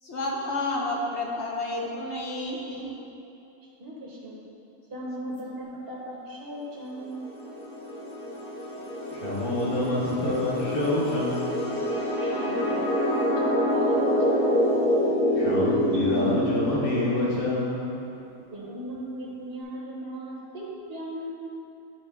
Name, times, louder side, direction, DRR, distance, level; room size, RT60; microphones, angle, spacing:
voice 1, 0.0-2.9, left 2 dB, 55° left, -2 dB, 0.9 m, -30 dB
voice 2, 3.8-4.4 4.9-7.3 12.2-14.7 18.5-21.3, right 1 dB, 45° right, -5 dB, 1.1 m, -37 dB
sound 1, 7.0-17.5, equal, 70° left, 1.8 m, -26 dB
voice 3, 9.1-11.7 15.3-18.0, left 1 dB, 40° left, -7 dB, 1.5 m, -27 dB
9.8 x 3.9 x 3.5 m, 2.8 s
omnidirectional pair, 1.6 m